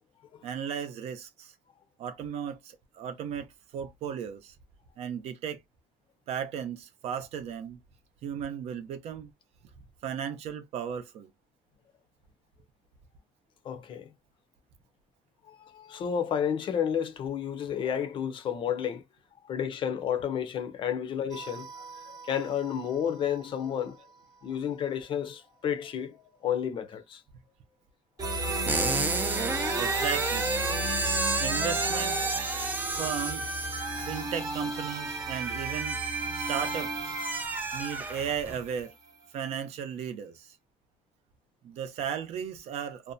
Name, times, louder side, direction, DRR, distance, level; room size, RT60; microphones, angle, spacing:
voice 1, 0.4-1.5 2.0-4.5 5.0-5.6 6.3-7.8 8.2-9.3 10.0-11.3 29.8-30.5 31.4-32.3 33.0-33.6 34.0-36.0 36.3-37.2 37.7-38.9 39.3-40.6 41.6-43.1, right 8 dB, 65° right, 0.6 m, -35 dB
voice 2, 13.6-14.1 15.4-19.0 19.4-21.7 22.1-24.1 24.4-27.2, left 8 dB, 45° left, 0.5 m, -31 dB
sound 1, 21.3-23.1 28.2-39.1, right 2 dB, 30° right, 0.8 m, -34 dB
sound 2, 28.7-38.6, right 3 dB, 15° right, 0.4 m, -32 dB
2.6 x 2.2 x 2.6 m
cardioid pair, 135°, 12 cm